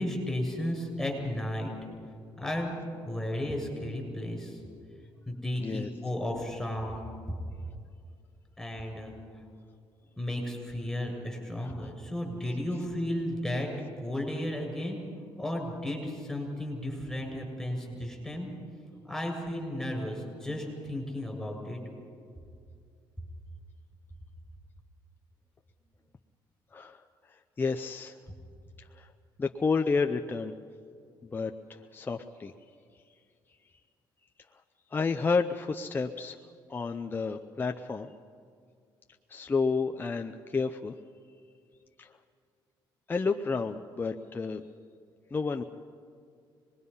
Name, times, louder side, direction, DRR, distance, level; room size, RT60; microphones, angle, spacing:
voice 1, 0.0-1.7 2.4-2.7 3.1-4.6 5.3-7.0 8.6-9.1 10.2-13.7 14.0-15.0 15.4-18.5 19.0-21.8, left 1 dB, 5° left, 1 dB, 6.8 m, -34 dB
voice 2, 27.6-28.2 29.0-29.1 29.4-30.5 31.2-31.5 31.9-32.5 34.9-36.4 36.7-38.1 39.3-40.9 42.0-42.1 43.1-44.6 45.3-45.6, left 4 dB, 25° left, 5 dB, 0.7 m, -30 dB
26.0 x 21.0 x 5.6 m, 2.3 s
cardioid pair, 110°, 9 cm